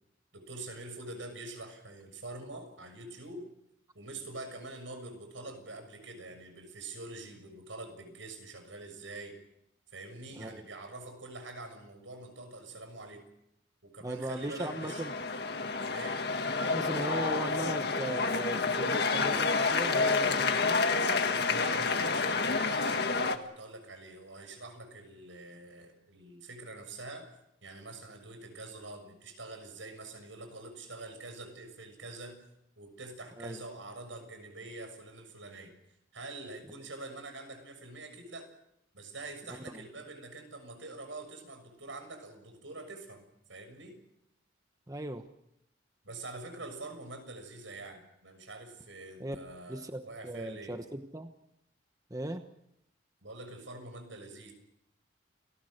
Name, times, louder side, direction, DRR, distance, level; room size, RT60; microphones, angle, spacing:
voice 1, 0.3-3.4 3.9-9.4 9.9-13.2 13.8-15.1 15.8-16.2 21.4-27.3 27.6-32.4 32.8-35.7 36.1-38.5 38.9-44.0 46.0-50.8 53.2-54.5, right 2 dB, 80° right, 7 dB, 6.6 m, -45 dB
voice 2, 14.0-15.1 16.6-20.8 33.4-33.6 39.7-39.9 44.9-45.3 49.2-49.4 49.7-51.3 52.1-52.5, right 1 dB, 20° right, 7 dB, 1.1 m, -38 dB
sound 1, 14.4-23.4, left 4 dB, 55° left, 1.7 m, -29 dB
29.5 x 19.5 x 6.6 m, 0.80 s
head